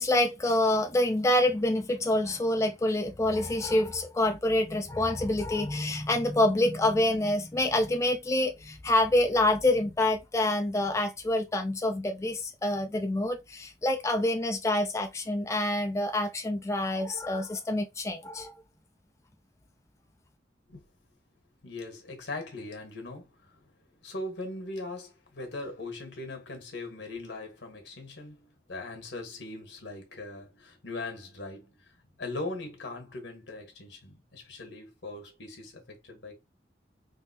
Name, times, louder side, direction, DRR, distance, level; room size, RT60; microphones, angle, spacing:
voice 1, 0.0-18.5, left 1 dB, 15° left, 0.4 m, -27 dB
voice 2, 21.6-23.7 24.0-36.4, left 2 dB, 80° left, 1.4 m, -40 dB
3.4 x 2.7 x 2.8 m
head